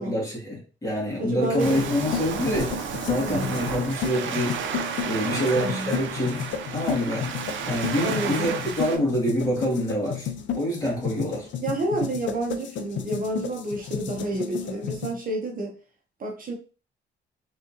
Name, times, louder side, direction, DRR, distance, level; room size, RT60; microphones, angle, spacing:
voice 1, 0.0-2.8 3.1-4.6 5.0-6.4 6.7-7.3 7.7-10.3 10.6-11.5, equal, 15° left, 2.1 m, -26 dB
voice 2, 1.2-1.9 3.2-3.6 5.1-6.0 8.0-8.5 11.6-15.7 16.2-16.5, right 1 dB, 45° right, 0.9 m, -30 dB
sound 1, 1.4-15.1, left 8 dB, 70° left, 0.6 m, -33 dB
Waves surf, 1.6-9.0, right 6 dB, 75° right, 0.6 m, -32 dB
3.6 x 3.3 x 2.8 m
cardioid pair, 90°, 20 cm